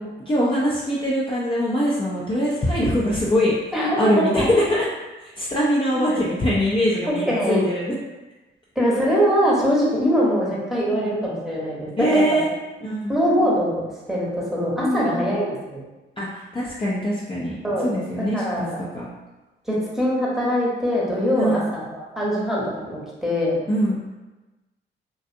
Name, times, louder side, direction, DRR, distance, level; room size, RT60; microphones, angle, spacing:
voice 1, 0.3-4.9 5.4-8.0 10.9-11.1 12.0-12.5 12.8-13.2 14.8-15.3 16.2-17.5 17.8-18.4 18.8-19.1 21.4-21.6 23.7-24.0, equal, 25° left, -6 dB, 0.5 m, -22 dB
voice 2, 3.7-4.5 5.9-6.2 7.1-7.7 8.8-12.4 13.1-15.8 17.6-17.9 18.3-18.8 19.7-23.6, equal, ahead, -6 dB, 1.0 m, -23 dB
2.5 x 2.2 x 2.6 m, 1.1 s
supercardioid pair, 55°, 21 cm